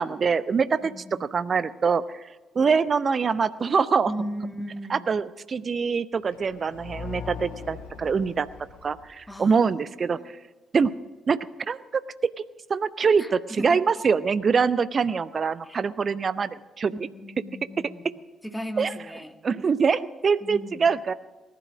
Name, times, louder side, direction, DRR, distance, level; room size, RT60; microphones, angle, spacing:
voice 1, 0.0-0.9 1.3-2.0 2.5-4.1 4.9-8.5 8.8-10.2 10.7-11.0 11.3-11.8 12.2-12.3 12.7-16.5 16.8-16.9 18.8-18.9 19.4-21.1, right 5 dB, 40° right, 16 dB, 0.6 m, -24 dB
voice 2, 0.8-1.5 4.0-5.1 9.3-10.3 13.2-13.8 15.6-15.8 17.0-18.1 18.4-19.4 20.4-20.8, equal, 5° left, 6 dB, 1.6 m, -37 dB
Sliding door, 6.1-9.1, equal, 85° right, 4.7 m, -49 dB
sound 1, 6.7-9.5, left 7 dB, 50° left, 0.5 m, -40 dB
19.0 x 10.5 x 6.1 m, 1.2 s
figure-of-eight pair, 40°, 0 cm